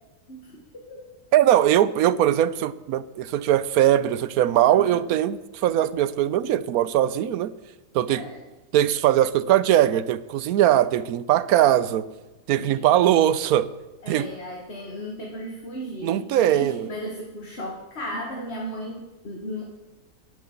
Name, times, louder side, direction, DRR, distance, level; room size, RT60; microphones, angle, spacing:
voice 1, 0.3-1.1 4.7-5.0 8.1-8.4 12.5-13.1 14.0-19.6, equal, 40° left, 0 dB, 1.9 m, -36 dB
voice 2, 1.3-7.5 7.9-8.2 8.7-12.1 12.5-13.7 14.1-14.3 16.0-16.9, right 12 dB, 70° right, 17 dB, 1.1 m, -20 dB
11.5 x 11.0 x 7.2 m, 1.1 s
omnidirectional pair, 1.7 m